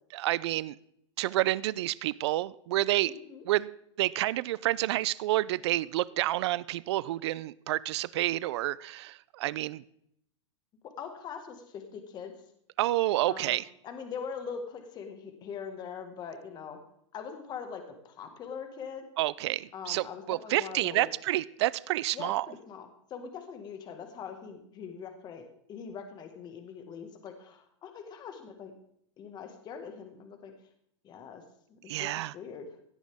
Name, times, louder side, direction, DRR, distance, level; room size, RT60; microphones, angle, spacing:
voice 1, 0.1-0.8 1.2-3.1 3.4-3.7 4.0-9.8 12.8-13.7 19.2-22.5 31.9-32.3, right 16 dB, 60° right, 20 dB, 0.5 m, -29 dB
voice 2, 3.0-3.4 11.0-12.3 13.3-13.6 13.8-16.8 17.1-19.0 19.7-21.1 22.1-28.7 29.2-30.5 31.0-31.4 31.7-32.6, left 6 dB, 25° left, 6 dB, 1.8 m, -42 dB
17.0 x 10.5 x 3.6 m, 0.72 s
hypercardioid pair, 140°, 16 cm